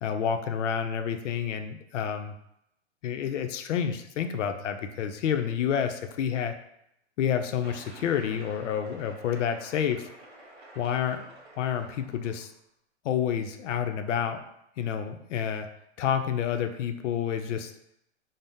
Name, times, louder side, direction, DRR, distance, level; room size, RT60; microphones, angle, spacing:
voice 1, 0.0-2.3 3.0-6.5 7.2-10.1 10.8-12.5 13.0-14.4 14.8-15.7 16.0-17.7, left 8 dB, 80° left, 7 dB, 0.5 m, -29 dB
sound 1, 7.6-12.6, right 1 dB, 55° right, 0.9 m, -50 dB
2.7 x 2.0 x 3.4 m, 0.80 s
hypercardioid pair, 175°, 35 cm